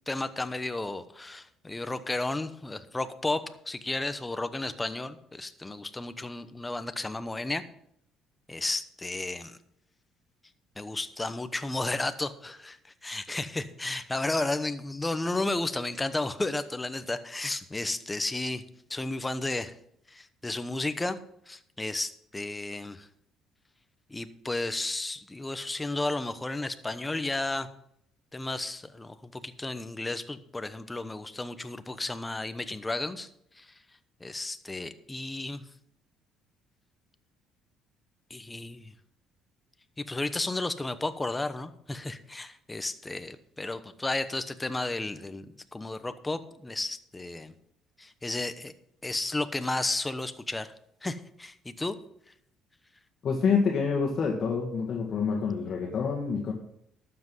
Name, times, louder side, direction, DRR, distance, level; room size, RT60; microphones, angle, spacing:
voice 1, 0.1-7.6 8.5-9.6 10.8-12.8 13.0-18.6 18.9-19.7 20.1-21.2 21.5-23.1 24.1-27.7 28.3-33.3 33.6-33.7 34.2-35.6 38.3-38.9 40.0-47.5 48.0-48.7 49.0-50.7 51.0-52.0, left 2 dB, 15° left, 11 dB, 0.9 m, -33 dB
voice 2, 53.2-56.5, left 5 dB, 45° left, 0 dB, 1.7 m, -27 dB
12.0 x 7.7 x 5.5 m, 0.73 s
cardioid pair, 105°, 0 cm